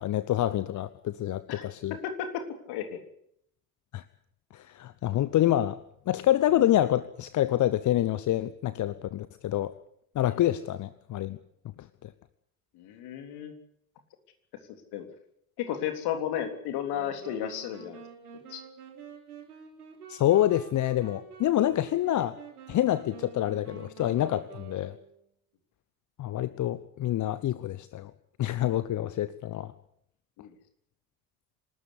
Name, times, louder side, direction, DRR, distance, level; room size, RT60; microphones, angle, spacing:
voice 1, 0.0-2.0 3.9-4.0 4.5-5.8 6.1-9.7 10.1-11.4 12.0-12.1 20.1-22.4 22.7-24.9 26.2-28.1 28.4-29.7, left 13 dB, 40° left, 15 dB, 1.0 m, -27 dB
voice 2, 1.5-3.0 12.7-13.5 14.9-15.1 15.6-18.0 18.5-18.6 30.4-30.5, left 9 dB, 55° left, 7 dB, 3.5 m, -33 dB
sound 1, 16.8-25.3, right 6 dB, 75° right, 3.7 m, -48 dB
26.0 x 13.0 x 9.9 m, 0.72 s
figure-of-eight pair, 55°, 45 cm